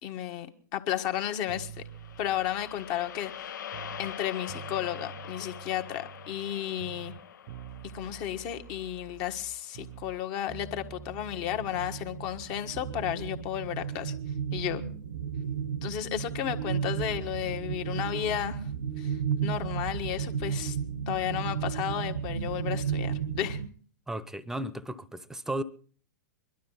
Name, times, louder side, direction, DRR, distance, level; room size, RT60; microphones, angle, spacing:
voice 1, 0.0-1.7 2.2-3.6 4.0-7.1 7.9-14.1 14.5-14.8 15.8-18.7 19.0-20.8 21.1-23.6, left 11 dB, 45° left, 1.4 m, -33 dB
sound 1, 1.5-4.2 4.5-6.5 6.8-10.2 10.5-13.1, right 10 dB, 45° right, 0.7 m, -47 dB
sound 2, 1.8-10.1, left 9 dB, 75° left, 0.8 m, -44 dB
sound 3, 11.5-23.7, right 7 dB, 80° right, 1.2 m, -33 dB
voice 2, 24.1-25.6, right 1 dB, 5° right, 0.9 m, -34 dB
22.0 x 12.0 x 4.0 m
hypercardioid pair, 110°, 10 cm